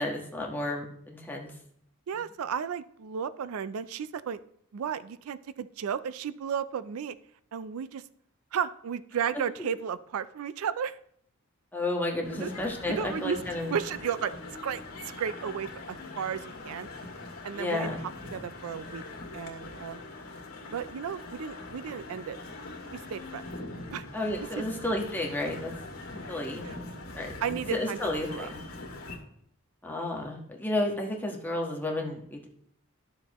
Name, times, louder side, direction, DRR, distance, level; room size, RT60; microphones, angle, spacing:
voice 1, 0.0-1.5 11.7-13.8 17.5-18.0 24.1-25.7 26.3-26.6 27.1-27.3 27.7-28.6 29.8-32.5, left 1 dB, 10° left, -1 dB, 1.3 m, -32 dB
voice 2, 2.1-4.4 4.7-7.2 7.5-8.0 8.5-11.0 12.3-12.5 12.9-13.4 13.7-14.3 14.6-16.9 17.4-17.9 18.3-19.0 19.3-20.0 20.7-22.4 22.9-23.4 23.9-24.1 24.3-24.6 26.6-26.7 27.4-28.0 28.3-28.5, right 7 dB, 75° right, 15 dB, 0.4 m, -34 dB
sound 1, 12.2-29.2, left 2 dB, 65° left, 2.2 m, -42 dB
12.5 x 7.1 x 3.0 m, 0.68 s
head